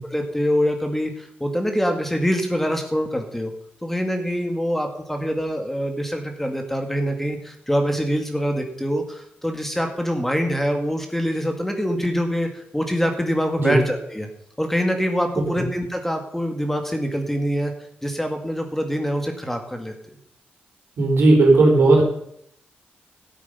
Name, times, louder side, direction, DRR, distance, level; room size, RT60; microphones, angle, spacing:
voice 1, 0.0-3.5 3.8-14.3 14.6-17.7 18.0-19.9, equal, 5° left, 4 dB, 2.3 m, -24 dB
voice 2, 21.0-22.0, right 2 dB, 75° right, 0 dB, 4.2 m, -16 dB
13.5 x 8.4 x 5.6 m, 0.70 s
cardioid pair, 60°, 4 cm